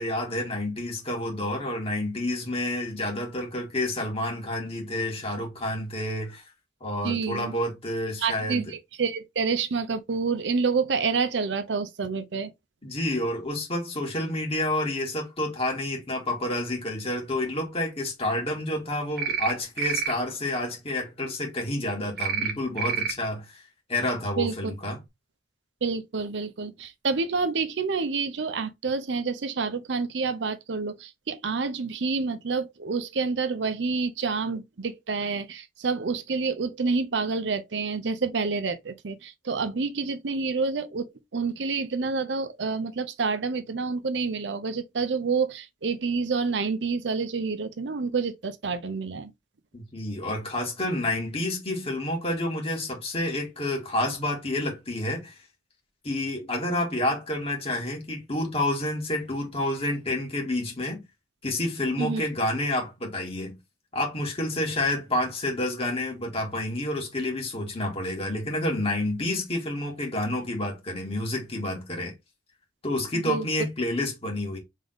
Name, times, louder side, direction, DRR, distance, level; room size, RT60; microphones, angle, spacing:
voice 1, 0.0-6.4 6.8-8.7 12.8-23.6 23.9-25.0 49.7-55.4 56.0-61.0 61.4-63.6 63.9-72.1 72.8-74.6, left 1 dB, 35° left, 2.1 m, -29 dB
voice 2, 7.0-7.5 8.2-12.5 24.4-24.7 25.8-49.3 62.0-62.2 73.2-73.4, right 4 dB, 75° right, 0.6 m, -28 dB
sound 1, 19.2-19.5 19.8-20.1 22.2-22.5 22.8-23.1, right 8 dB, 60° right, 1.1 m, -28 dB
3.6 x 3.6 x 3.9 m
head